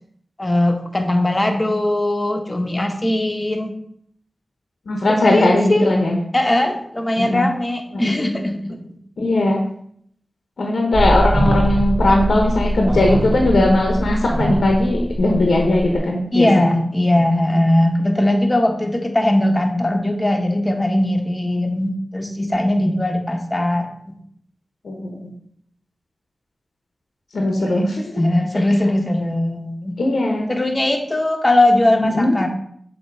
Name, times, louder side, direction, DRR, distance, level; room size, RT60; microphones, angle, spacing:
voice 1, 0.4-3.7 5.2-5.9 6.3-8.8 16.3-24.1 27.6-27.8 28.2-30.0 30.5-32.5, left 1 dB, 30° left, 4 dB, 1.1 m, -19 dB
voice 2, 4.9-6.2 7.2-7.5 7.9-8.2 9.2-9.6 10.6-16.8 22.8-22.9 24.8-25.3 27.3-28.2 30.0-30.5 32.0-32.3, left 1 dB, 85° left, 1 dB, 1.0 m, -18 dB
sound 1, 10.9-16.0, equal, 35° right, 1.4 m, -22 dB
7.1 x 2.9 x 4.6 m, 0.66 s
cardioid pair, 40°, 0 cm